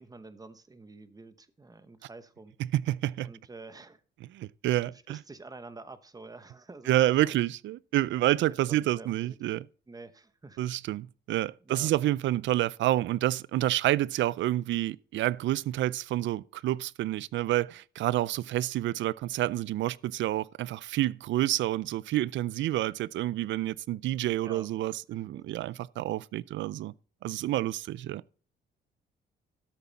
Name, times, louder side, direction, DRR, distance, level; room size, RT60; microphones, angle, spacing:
voice 1, 0.0-2.5 3.2-4.0 4.8-7.4 8.5-9.4 9.9-10.6 11.6-11.9 24.4-24.7 25.3-25.8, right 3 dB, 20° right, 1.0 m, -48 dB
voice 2, 2.7-3.3 4.3-5.2 6.9-9.7 10.6-26.9 27.2-28.2, right 14 dB, 70° right, 0.4 m, -28 dB
13.0 x 7.1 x 4.1 m
cardioid pair, 90°, 20 cm